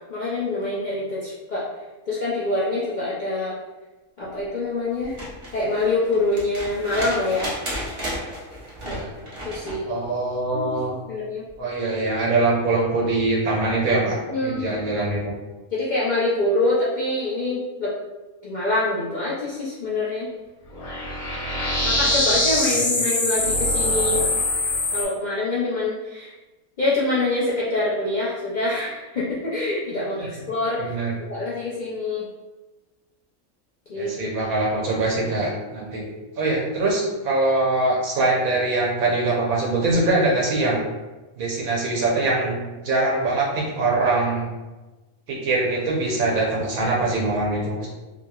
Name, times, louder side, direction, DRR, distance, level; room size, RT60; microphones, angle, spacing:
voice 1, 0.1-1.7 2.1-3.6 4.2-5.2 5.5-7.5 8.8-9.0 9.4-9.9 10.5-10.7 11.1-11.4 14.2-14.8 15.7-17.9 18.4-20.3 21.8-24.2 24.9-26.3 26.8-30.9 31.2-32.3 33.9-34.5, left 2 dB, 55° left, -8 dB, 0.5 m, -25 dB
sound 1, 5.0-9.8 11.5-11.6, equal, 30° right, 0.7 m, -33 dB
voice 2, 9.9-10.9 11.6-15.3 22.7-23.0 30.2-30.3 30.8-31.2 34.0-36.0 36.4-40.8 41.4-44.5 45.3-47.9, right 2 dB, 80° right, -3 dB, 1.3 m, -23 dB
sound 2, 20.7-25.0, left 2 dB, 90° left, 1.2 m, -23 dB
3.2 x 2.8 x 2.3 m, 1.1 s
omnidirectional pair, 1.4 m